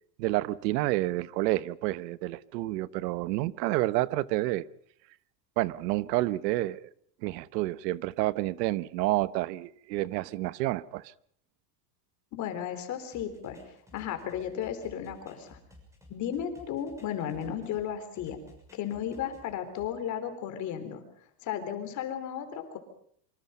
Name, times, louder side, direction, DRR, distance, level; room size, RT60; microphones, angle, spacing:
voice 1, 0.2-4.6 5.6-6.9 7.2-11.1, right 17 dB, 90° right, 1.0 m, -29 dB
voice 2, 12.3-13.6 13.9-15.6 16.1-18.4 18.7-21.0 21.4-22.8, left 9 dB, 35° left, 3.8 m, -34 dB
sound 1, 13.1-17.8 18.1-19.9, left 2 dB, 5° right, 6.6 m, -54 dB
26.5 x 25.0 x 5.6 m
cardioid pair, 170°, 48 cm